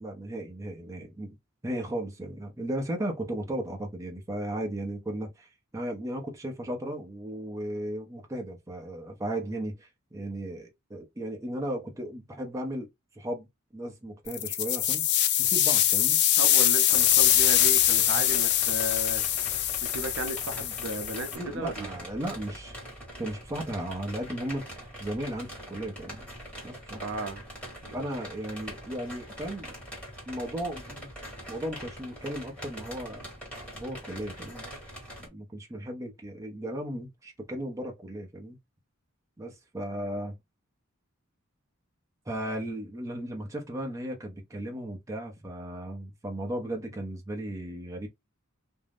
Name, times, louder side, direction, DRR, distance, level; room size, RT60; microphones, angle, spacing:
voice 1, 0.0-1.4 1.6-12.9 13.2-13.5 13.7-15.0 15.4-16.2 21.4-22.8 23.2-26.3 26.6-27.0 27.9-29.7 30.3-31.1 31.5-33.3 33.7-34.7 35.2-38.6 39.4-40.4 42.3-48.1, right 1 dB, 15° right, 0.5 m, -35 dB
sound 1, 14.3-21.4, left 11 dB, 55° left, 0.4 m, -23 dB
voice 2, 16.4-19.2 19.8-21.9 27.0-27.4 27.8-28.0, right 1 dB, 65° right, 0.6 m, -35 dB
sound 2, 16.9-35.3, equal, 5° left, 1.3 m, -43 dB
2.4 x 2.0 x 3.4 m
head